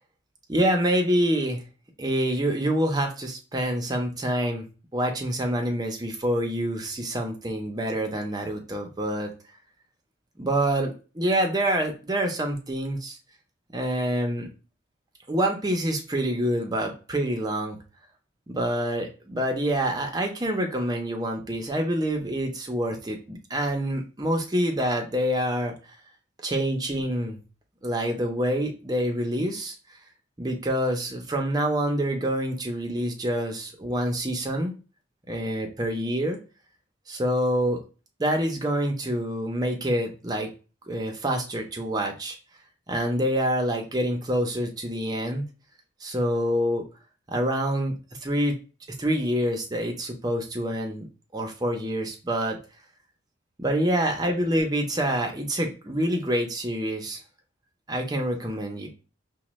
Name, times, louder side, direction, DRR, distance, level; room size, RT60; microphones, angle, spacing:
voice 1, 0.5-1.6 2.0-4.7 4.9-9.3 10.4-13.2 13.7-14.5 15.3-17.8 18.5-25.7 26.4-27.4 27.8-29.7 30.4-34.7 35.3-36.4 37.1-37.8 38.2-40.5 40.9-42.4 42.9-45.4 46.0-46.8 47.3-47.9 48.2-48.6 49.0-51.0 51.3-52.6 53.6-57.2 57.9-58.9, equal, 20° right, 3 dB, 0.6 m, -26 dB
4.9 x 2.1 x 3.0 m, 0.34 s
head